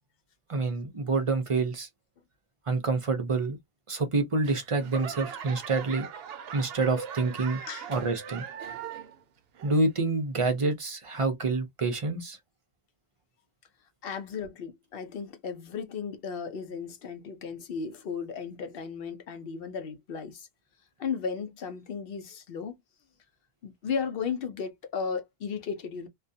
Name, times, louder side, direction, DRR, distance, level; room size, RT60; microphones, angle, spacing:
voice 1, 0.5-1.9 2.7-3.6 3.9-6.1 6.5-7.6 7.9-8.4 9.6-12.4, right 3 dB, 40° right, 0.5 m, -27 dB
Laughter / Clapping / Crowd, 4.4-9.2 9.5-10.1 10.6-10.7, right 8 dB, 75° right, 0.8 m, -40 dB
voice 2, 14.0-20.5 21.0-22.7 23.6-26.1, left 6 dB, 70° left, 0.8 m, -35 dB
2.3 x 2.2 x 2.6 m
omnidirectional pair, 1.0 m